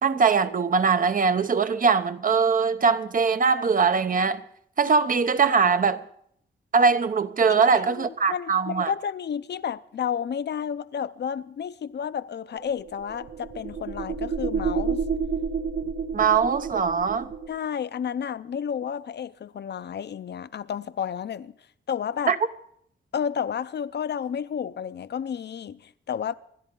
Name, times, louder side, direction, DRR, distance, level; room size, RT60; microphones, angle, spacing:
voice 1, 0.0-4.4 4.8-6.0 6.7-8.9 16.1-17.3 22.3-22.4, right 5 dB, 45° right, 0.8 m, -21 dB
voice 2, 7.5-15.0 17.5-21.5 21.9-22.4 23.1-26.3, left 8 dB, 60° left, 0.5 m, -31 dB
sound 1, 12.6-17.6, right 5 dB, 75° right, 1.0 m, -30 dB
27.0 x 11.5 x 3.8 m
wide cardioid pair, 145°, 20 cm